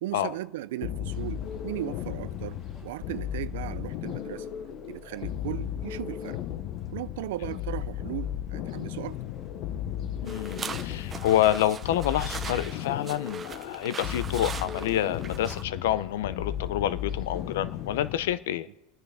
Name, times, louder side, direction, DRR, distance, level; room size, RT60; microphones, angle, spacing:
voice 1, 0.0-2.6 2.8-4.5 4.9-6.4 6.9-9.2, right 15 dB, 80° right, 0.6 m, -36 dB
sound 1, 0.8-18.4, left 10 dB, 50° left, 0.9 m, -35 dB
sound 2, 1.1-18.3, equal, 30° left, 2.2 m, -55 dB
voice 2, 10.2-18.7, left 12 dB, 85° left, 0.6 m, -28 dB
sound 3, 10.3-15.6, right 6 dB, 20° right, 0.8 m, -40 dB
30.0 x 10.0 x 3.5 m
supercardioid pair, 140°, 0 cm